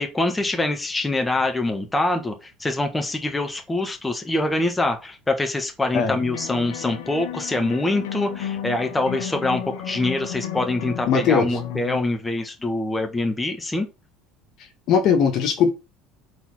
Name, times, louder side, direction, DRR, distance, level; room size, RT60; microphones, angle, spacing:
voice 1, 0.0-13.9, left 2 dB, 15° left, 1.4 m, -24 dB
sound 1, 6.1-12.0, left 10 dB, 85° left, 1.2 m, -33 dB
voice 2, 11.1-11.5 14.9-15.7, left 6 dB, 60° left, 1.8 m, -19 dB
4.7 x 4.1 x 5.5 m
supercardioid pair, 100°, 0 cm